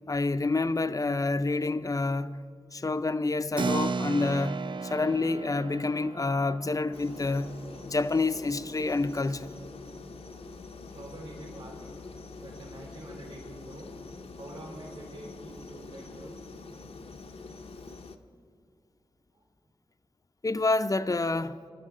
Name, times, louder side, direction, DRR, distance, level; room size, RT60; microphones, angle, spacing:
voice 1, 0.1-2.4 2.7-4.6 4.8-7.5 7.8-9.5 20.4-21.6, left 3 dB, 35° left, 0.5 m, -28 dB
Keyboard (musical), 3.6-9.6, right 4 dB, 50° right, 0.4 m, -36 dB
sound 1, 6.9-18.2, left 4 dB, 70° left, 0.7 m, -45 dB
voice 2, 10.1-11.7 12.4-13.9 14.4-16.4 16.8-16.9 19.3-19.4, right 1 dB, 70° right, 4.2 m, -46 dB
23.0 x 12.0 x 3.7 m
wide cardioid pair, 65°, 10 cm